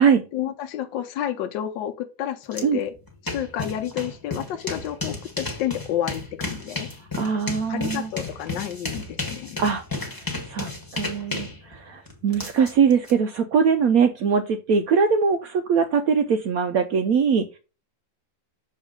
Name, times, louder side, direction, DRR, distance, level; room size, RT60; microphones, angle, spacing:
voice 1, 0.3-2.9 3.2-6.9 7.7-9.6, left 11 dB, 75° left, 6 dB, 1.3 m, -30 dB
sound 1, 2.5-2.6 2.9-13.1, left 3 dB, 15° left, 1.1 m, -33 dB
voice 2, 7.2-8.1 9.6-17.6, right 6 dB, 85° right, 8 dB, 0.7 m, -22 dB
6.4 x 3.2 x 5.1 m, 0.32 s
omnidirectional pair, 2.1 m